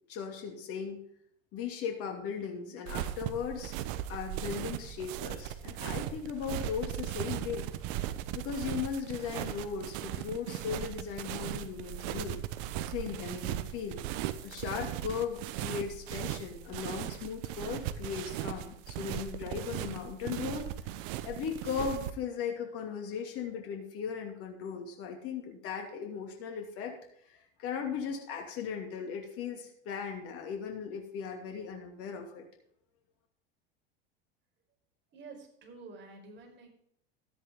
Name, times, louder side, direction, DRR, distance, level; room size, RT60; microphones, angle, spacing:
voice 1, 0.1-1.0 1.5-3.7 4.1-7.7 8.3-12.4 12.9-14.0 14.4-20.7 21.2-27.0 27.3-32.4, left 7 dB, 50° left, 3 dB, 2.7 m, -37 dB
sound 1, 2.9-22.1, right 12 dB, 60° right, 1.1 m, -38 dB
voice 2, 35.1-36.7, right 4 dB, 40° right, 1 dB, 5.2 m, -49 dB
13.5 x 10.0 x 3.7 m, 0.69 s
hypercardioid pair, 85°, 30 cm